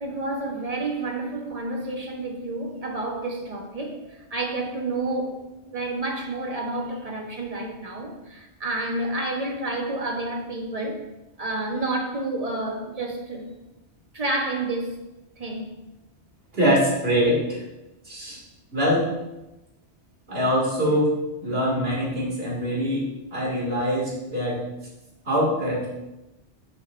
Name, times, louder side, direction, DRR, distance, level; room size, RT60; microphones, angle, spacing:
voice 1, 0.0-11.0 11.4-13.5 14.1-15.0 15.4-15.8, right 2 dB, 35° right, 0 dB, 1.3 m, -30 dB
voice 2, 16.5-17.6 18.0-18.4 18.7-19.1 20.3-21.1 21.4-24.7 25.3-25.9, equal, 60° right, -4 dB, 2.7 m, -23 dB
9.0 x 7.1 x 2.6 m, 0.97 s
omnidirectional pair, 1.2 m